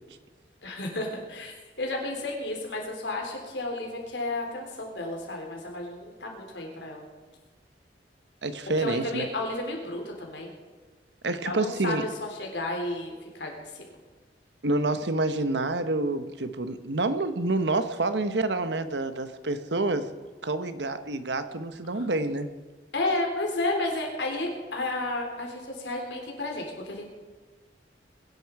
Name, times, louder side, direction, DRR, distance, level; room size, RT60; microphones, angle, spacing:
voice 1, 0.6-7.0 8.8-10.5 11.4-14.0 21.9-22.1 22.9-27.0, left 2 dB, 90° left, 1 dB, 3.8 m, -32 dB
voice 2, 8.4-9.3 11.2-12.0 14.6-20.1 20.4-22.5, right 2 dB, 85° right, 11 dB, 1.1 m, -28 dB
21.5 x 11.0 x 4.8 m, 1.4 s
head